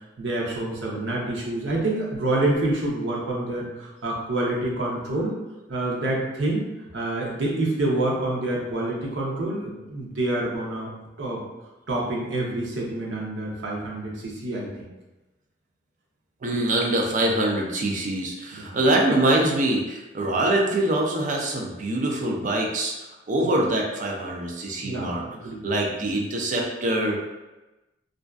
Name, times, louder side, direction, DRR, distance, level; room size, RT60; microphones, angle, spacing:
voice 1, 0.2-5.4 5.7-6.6 6.9-10.9 11.2-11.4 11.9-14.9 18.5-18.8 20.2-20.4 23.4-23.6 24.8-25.6 26.0-26.1, right 2 dB, 75° right, -3 dB, 0.7 m, -27 dB
voice 2, 16.4-22.9 23.3-25.2 25.6-27.2, right 1 dB, 40° right, 0 dB, 0.4 m, -24 dB
2.5 x 2.2 x 2.3 m, 1.1 s
head